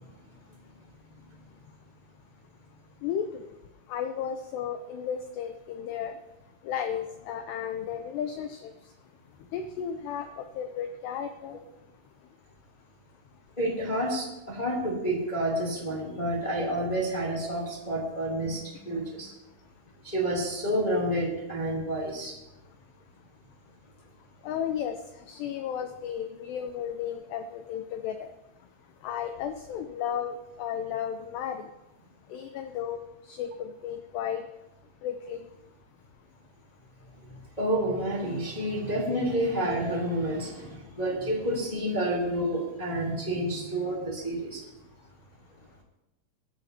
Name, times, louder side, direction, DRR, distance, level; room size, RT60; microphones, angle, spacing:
voice 1, 3.0-3.4 3.9-6.1 6.6-8.7 9.5-11.6 24.4-25.0 25.3-28.3 29.0-31.7 32.3-33.0 33.3-34.4 35.0-35.5, left 8 dB, 85° left, 7 dB, 2.4 m, -34 dB
voice 2, 13.6-19.3 20.0-22.3 37.6-44.6, right 1 dB, 15° left, -4 dB, 1.7 m, -29 dB
20.5 x 12.5 x 2.8 m, 0.94 s
omnidirectional pair, 5.7 m